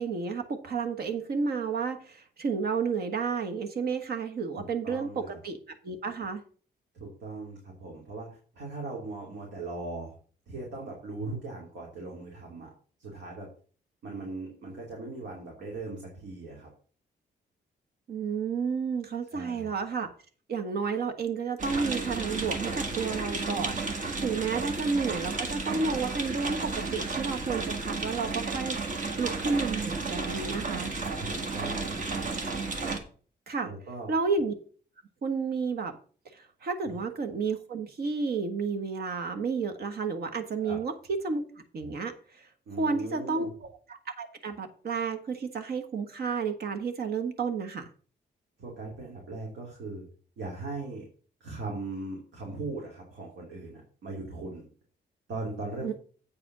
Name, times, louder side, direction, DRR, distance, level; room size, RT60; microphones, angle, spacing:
voice 1, 0.0-5.6 5.8-6.4 18.1-20.1 20.5-30.9 33.5-33.7 34.1-34.5 35.2-35.9 36.3-40.9 41.2-41.4 41.7-42.5 42.8-47.8 55.8-55.9, right 5 dB, 60° right, 7 dB, 1.4 m, -31 dB
voice 2, 4.6-5.4 6.9-10.2 10.5-12.7 13.0-13.5 14.0-16.7 19.3-19.7 24.5-24.7 31.2-32.5 33.6-34.1 36.9-37.0 40.6-40.8 42.7-43.5 48.6-50.1 50.4-51.1 51.4-54.7 55.3-55.9, right 3 dB, 80° right, -2 dB, 2.9 m, -39 dB
sound 1, 21.6-33.0, right 3 dB, 45° right, 1.5 m, -33 dB
8.4 x 5.0 x 6.1 m, 0.42 s
wide cardioid pair, 165°, 18 cm